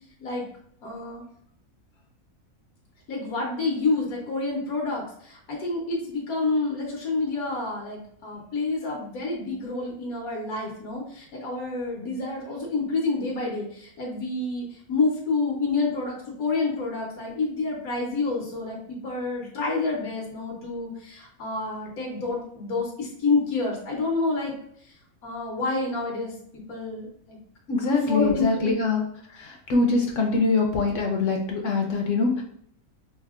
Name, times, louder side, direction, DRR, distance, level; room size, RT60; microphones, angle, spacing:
voice 1, 0.8-1.2 3.1-24.6 25.2-27.4 27.8-28.7, left 3 dB, 85° left, -2 dB, 1.3 m, -28 dB
voice 2, 27.7-29.0 29.4-32.4, left 3 dB, 65° left, 1 dB, 0.8 m, -23 dB
5.3 x 2.0 x 2.4 m, 0.67 s
omnidirectional pair, 1.5 m